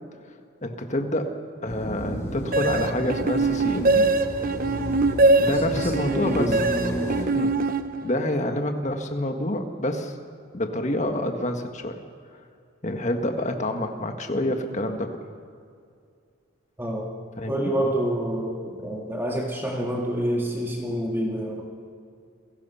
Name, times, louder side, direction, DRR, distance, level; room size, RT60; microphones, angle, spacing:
voice 1, 0.6-1.3 1.6-4.1 5.4-6.6 7.3-7.6 8.0-10.1 10.5-11.9 12.8-15.1 17.4-17.7, left 1 dB, 35° left, 5 dB, 1.6 m, -27 dB
sound 1, 1.7-7.3, right 1 dB, 15° left, 4.1 m, -33 dB
sound 2, 2.5-8.3, right 2 dB, 45° right, 0.8 m, -23 dB
voice 2, 5.7-6.6 16.8-17.1 17.5-21.6, equal, 10° right, -1 dB, 2.1 m, -27 dB
29.5 x 17.0 x 5.7 m, 2.3 s
head